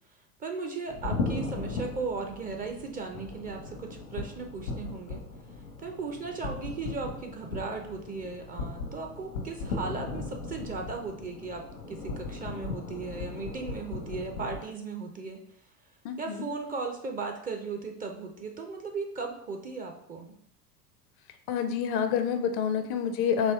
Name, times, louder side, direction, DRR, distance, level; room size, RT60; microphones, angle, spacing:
voice 1, 0.4-5.2 5.8-15.4 16.2-20.3 22.3-22.5, right 4 dB, 20° right, 3 dB, 0.4 m, -37 dB
sound 1, 0.9-14.6, left 3 dB, 80° left, 0.9 m, -37 dB
voice 2, 16.0-16.5 21.5-23.5, left 7 dB, 40° left, 7 dB, 0.5 m, -28 dB
4.4 x 2.9 x 3.4 m, 0.68 s
figure-of-eight pair, 80°, 47 cm